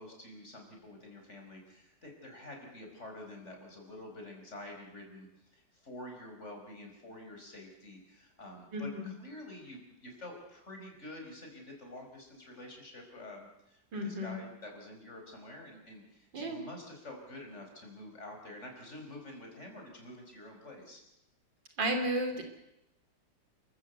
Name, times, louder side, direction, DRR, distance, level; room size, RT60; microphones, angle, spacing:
voice 1, 0.0-21.0, left 1 dB, 40° left, 2 dB, 5.5 m, -48 dB
voice 2, 8.7-9.1 13.9-14.4 16.3-16.6 21.8-22.4, right 1 dB, 85° right, 4 dB, 3.7 m, -33 dB
30.0 x 14.0 x 8.2 m, 0.88 s
omnidirectional pair, 1.9 m